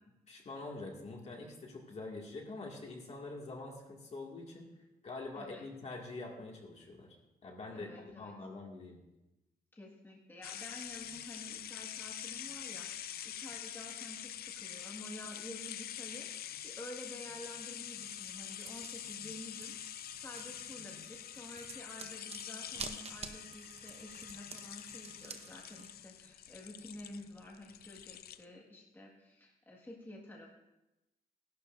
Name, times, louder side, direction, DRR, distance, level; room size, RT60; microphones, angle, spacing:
voice 1, 0.3-4.7 5.0-7.2 7.4-9.0, left 2 dB, 45° left, -1 dB, 2.2 m, -45 dB
voice 2, 7.7-8.3 9.7-30.5, left 1 dB, 15° left, -2 dB, 1.8 m, -50 dB
sound 1, 10.4-28.4, left 11 dB, 85° left, 0.5 m, -45 dB
sound 2, 17.8-25.9, right 5 dB, 40° right, 0.8 m, -50 dB
17.0 x 11.5 x 2.6 m, 0.97 s
wide cardioid pair, 130°, 15 cm